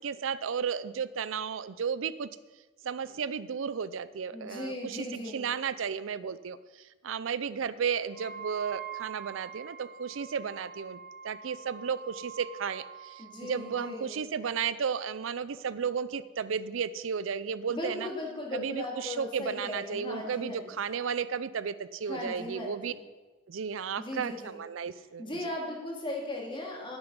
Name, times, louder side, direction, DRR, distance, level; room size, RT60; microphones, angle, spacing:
voice 1, 0.0-2.3 2.8-6.6 7.0-11.0 11.2-18.1 18.5-22.9 23.5-25.5, right 6 dB, 85° right, 15 dB, 0.5 m, -33 dB
voice 2, 4.3-5.4 13.2-14.1 17.7-20.8 22.1-23.0 24.0-24.6 25.2-27.0, left 1 dB, 25° left, 0 dB, 2.3 m, -37 dB
Wind instrument woodwind instrument, 8.1-14.0, right 8 dB, 5° left, 3.0 m, -44 dB
11.5 x 9.8 x 5.4 m, 1.3 s
head